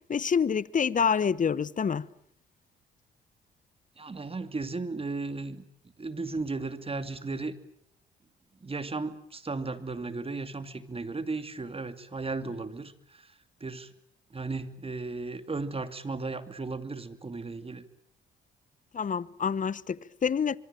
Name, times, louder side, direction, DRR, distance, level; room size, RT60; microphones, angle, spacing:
voice 1, 0.1-2.1 18.9-20.6, left 6 dB, 40° left, 1.0 m, -27 dB
voice 2, 4.0-5.6 6.0-7.6 8.6-13.3 13.6-13.9 14.3-17.8, right 3 dB, 25° right, 2.6 m, -35 dB
24.5 x 23.5 x 9.0 m
supercardioid pair, 65°, 21 cm